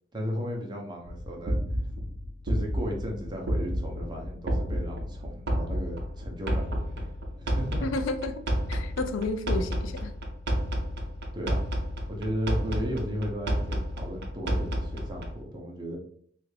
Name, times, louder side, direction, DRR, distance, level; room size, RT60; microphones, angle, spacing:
voice 1, 0.1-1.6 2.4-7.9 11.3-11.6 12.1-16.0, equal, 25° right, 0 dB, 0.7 m, -35 dB
sound 1, 1.1-15.4, equal, 60° right, 0.6 m, -31 dB
voice 2, 7.8-8.4 8.7-10.1, left 2 dB, 85° left, 9 dB, 0.4 m, -31 dB
3.3 x 2.4 x 3.2 m, 0.62 s
head